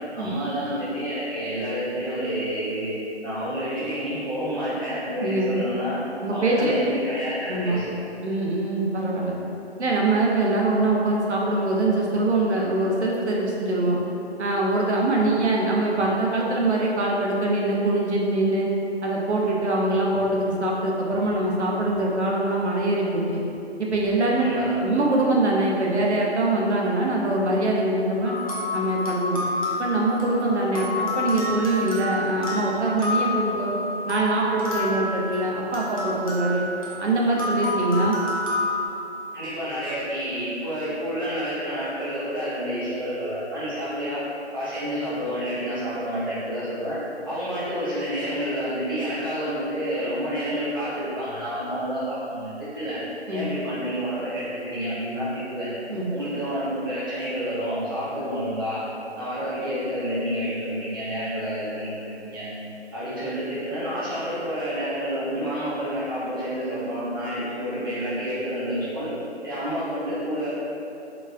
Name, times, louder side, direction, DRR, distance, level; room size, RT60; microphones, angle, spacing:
voice 1, 0.2-2.9 3.2-6.0 6.3-7.9 24.4-24.8 39.3-44.2 44.5-47.0 47.2-53.0 53.3-55.7 56.1-58.8 59.2-62.5 62.9-69.1 69.4-70.5, equal, 20° right, -12 dB, 0.6 m, -29 dB
voice 2, 5.2-5.6 6.2-6.7 7.5-7.8 8.2-9.4 9.8-14.0 14.4-18.7 19.0-23.4 23.8-24.5 24.8-28.3 28.7-29.4 29.8-33.7 34.1-36.7 37.0-38.2 53.3-53.5 55.9-56.1, right 2 dB, 80° right, -2 dB, 0.7 m, -23 dB
sound 1, 28.2-38.9, left 1 dB, 35° left, 0.5 m, -29 dB
4.0 x 2.2 x 2.3 m, 2.8 s
figure-of-eight pair, 155°, 33 cm